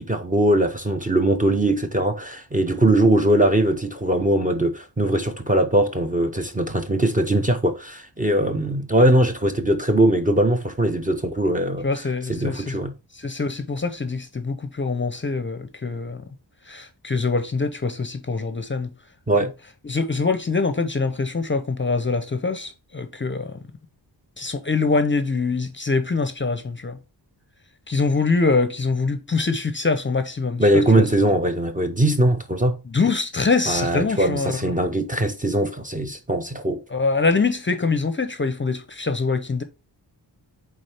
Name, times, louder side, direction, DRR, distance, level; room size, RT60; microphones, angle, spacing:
voice 1, 0.0-12.9 19.3-19.5 30.6-32.8 33.7-36.8, right 1 dB, 20° right, 0.5 m, -21 dB
voice 2, 11.8-12.8 13.1-16.2 16.7-18.9 19.8-23.6 24.4-27.0 27.9-31.0 32.9-34.7 36.9-39.6, left 4 dB, 25° left, 0.5 m, -24 dB
8.6 x 3.5 x 3.3 m
wide cardioid pair, 170°, 44 cm